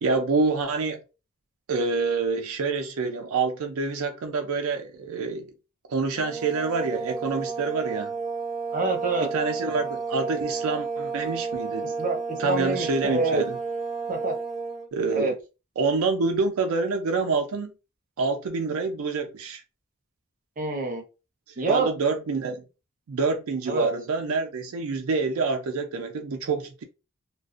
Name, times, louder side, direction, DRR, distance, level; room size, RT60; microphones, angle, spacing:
voice 1, 0.0-1.0 1.7-5.5 5.9-8.1 9.3-11.9 12.4-13.6 14.9-15.3 15.8-17.7 18.2-19.6 21.7-22.6 23.1-26.8, right 4 dB, 85° right, 0.4 m, -27 dB
sound 1, 6.2-14.9, right 4 dB, ahead, 0.5 m, -31 dB
voice 2, 8.7-9.3 11.8-13.4 14.1-14.3 15.1-15.3 20.6-21.0 21.6-21.9 23.7-23.9, right 3 dB, 40° right, 0.7 m, -26 dB
2.4 x 2.2 x 2.4 m
head